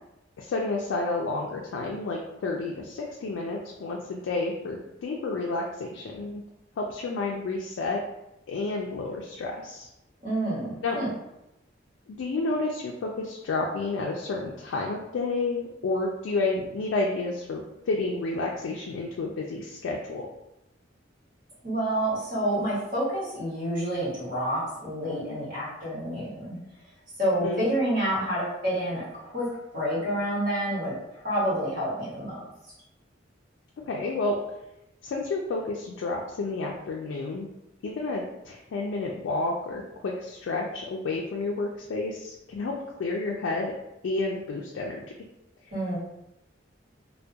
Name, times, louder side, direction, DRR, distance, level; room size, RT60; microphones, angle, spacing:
voice 1, 0.4-6.4 6.8-8.0 8.5-9.9 10.8-11.0 12.1-20.3 27.4-27.7 33.9-34.4 35.0-37.4 37.8-43.7 44.0-45.0, left 3 dB, 80° left, -1 dB, 0.3 m, -30 dB
voice 2, 10.2-11.1 21.6-26.6 27.2-32.4 45.7-46.0, right 1 dB, 45° right, -7 dB, 1.1 m, -28 dB
2.3 x 2.1 x 2.6 m, 0.88 s
head